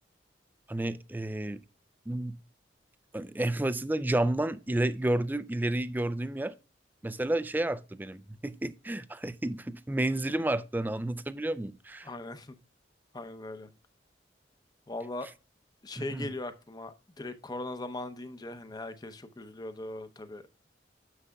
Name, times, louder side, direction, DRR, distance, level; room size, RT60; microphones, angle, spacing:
voice 1, 0.7-1.6 2.1-2.4 3.1-6.5 7.0-12.1 16.0-16.3, right 1 dB, 10° right, 0.3 m, -31 dB
voice 2, 12.0-12.6 13.1-13.7 14.9-15.3 15.8-20.4, left 2 dB, 20° left, 0.7 m, -39 dB
9.8 x 6.9 x 2.3 m
head